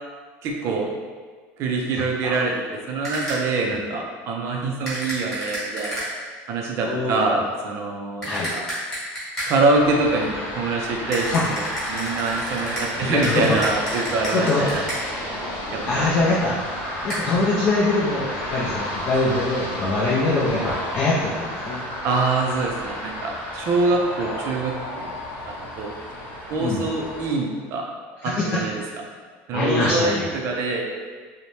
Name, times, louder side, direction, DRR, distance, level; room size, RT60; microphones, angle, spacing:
voice 1, 0.4-0.9 1.6-6.0 6.5-8.7 9.5-14.9 15.7-16.2 22.0-25.2 25.5-26.0 26.5-27.8 28.2-28.8 29.5-30.8, right 3 dB, 45° right, 0 dB, 0.4 m, -25 dB
voice 2, 2.0-2.4 6.8-7.4 8.2-8.5 11.3-11.4 13.0-13.6 14.3-14.8 15.9-16.5 17.0-21.8 26.6-26.8 28.2-28.6 29.5-30.3, left 2 dB, 35° left, -7 dB, 0.4 m, -23 dB
sound 1, 3.0-3.6 4.9-6.3 8.2-9.8 11.1-15.2 17.1-17.2, equal, 10° left, 1.0 m, -31 dB
sound 2, 9.7-27.3, left 1 dB, 55° left, 0.9 m, -32 dB
2.6 x 2.1 x 3.1 m, 1.5 s
cardioid pair, 155°, 6 cm